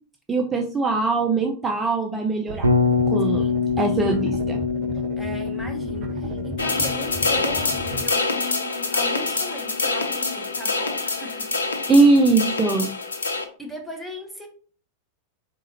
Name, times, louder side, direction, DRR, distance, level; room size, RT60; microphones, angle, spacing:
voice 1, 0.3-2.7 3.1-3.4 3.8-4.6 11.9-12.9, right 3 dB, 15° right, 2 dB, 0.4 m, -20 dB
sound 1, 2.5-8.0, right 2 dB, 40° right, 0.8 m, -35 dB
Bass guitar, 2.6-10.7, left 5 dB, 85° right, 0.5 m, -26 dB
voice 2, 3.3-3.6 5.2-11.5 13.6-14.5, equal, ahead, 0 dB, 1.0 m, -38 dB
sound 2, 6.6-13.4, left 3 dB, 75° left, 0.5 m, -26 dB
3.6 x 2.9 x 2.8 m, 0.42 s
figure-of-eight pair, 90°, 0 cm